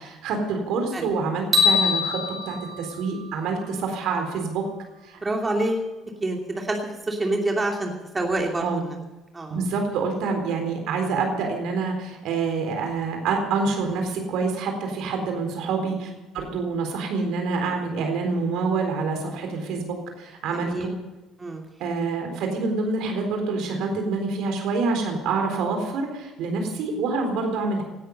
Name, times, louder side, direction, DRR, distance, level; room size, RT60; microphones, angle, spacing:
voice 1, 0.0-2.2 2.5-4.6 5.0-5.2 8.6-8.8 9.5-16.1 16.3-20.9 21.8-27.8, right 4 dB, 60° right, 4 dB, 3.9 m, -26 dB
sound 1, 1.5-3.8, left 4 dB, 40° right, 4.9 m, -24 dB
voice 2, 5.2-5.9 6.2-6.8 7.1-9.0 9.3-9.6 20.5-20.9 21.4-21.6, right 2 dB, 25° right, 1 dB, 2.8 m, -27 dB
17.5 x 13.0 x 5.4 m, 1.1 s
figure-of-eight pair, 55°, 0 cm